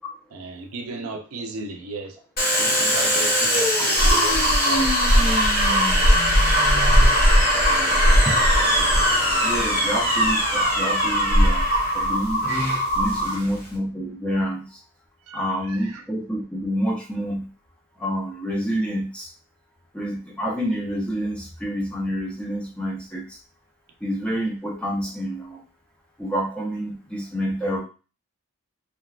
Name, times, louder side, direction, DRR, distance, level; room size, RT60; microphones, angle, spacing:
voice 1, 0.3-2.2 2.6-6.3 6.7-7.2 13.2-13.5 15.3-16.0, right 2 dB, 70° right, 3 dB, 0.5 m, -36 dB
Domestic sounds home sounds, 2.4-13.7, equal, 40° left, 0.8 m, -23 dB
sound 1, 4.0-13.3, equal, 70° left, 0.9 m, -21 dB
voice 2, 9.4-11.6 11.9-12.5 13.0-14.7 15.3-17.5 18.0-19.3 19.9-23.2 24.0-25.6 26.2-27.8, equal, 5° left, -2 dB, 0.6 m, -28 dB
3.3 x 2.2 x 2.3 m, 0.35 s
head